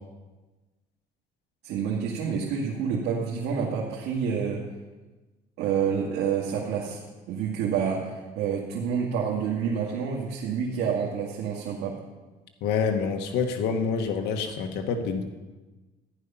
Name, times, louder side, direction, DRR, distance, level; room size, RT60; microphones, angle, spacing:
voice 1, 1.6-4.7 5.6-12.0, right 7 dB, 85° right, -3 dB, 2.1 m, -28 dB
voice 2, 12.6-15.2, left 5 dB, 85° left, 5 dB, 1.4 m, -27 dB
14.5 x 10.5 x 5.6 m, 1.2 s
cardioid pair, 110°, 17 cm